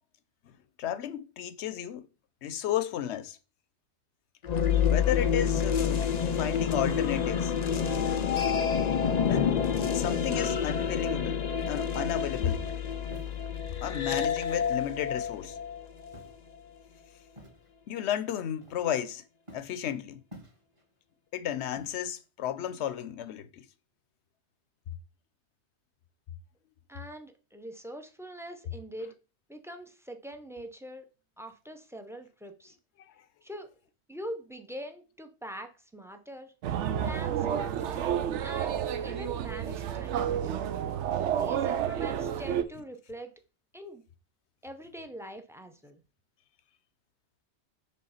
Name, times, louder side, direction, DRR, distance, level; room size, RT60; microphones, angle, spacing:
voice 1, 0.8-2.1 2.4-3.4 4.9-6.1 6.4-7.5 9.2-9.6 9.9-11.4 11.7-12.6 13.8-15.6 17.9-19.2 19.5-20.2 21.3-23.6 33.1-33.2, left 10 dB, 75° left, 0.9 m, -33 dB
sound 1, 4.4-16.3, left 7 dB, 50° left, 0.5 m, -28 dB
Walk footsteps, 13.1-13.4 14.1-14.3 15.2-15.5 16.1-16.5 17.3-17.7 18.6-19.1 19.5-19.8 20.3-20.8 21.8-22.2, equal, 25° right, 1.6 m, -50 dB
voice 2, 26.9-29.1 29.5-31.0 31.4-32.8 33.4-33.7 34.1-36.5 37.0-38.0 38.4-38.8 39.0-40.6 41.3-43.3 43.7-44.0 44.6-46.0, equal, 5° right, 0.5 m, -43 dB
sound 2, 36.6-42.6, right 9 dB, 85° right, 0.9 m, -30 dB
5.4 x 3.3 x 5.6 m
omnidirectional pair, 1.2 m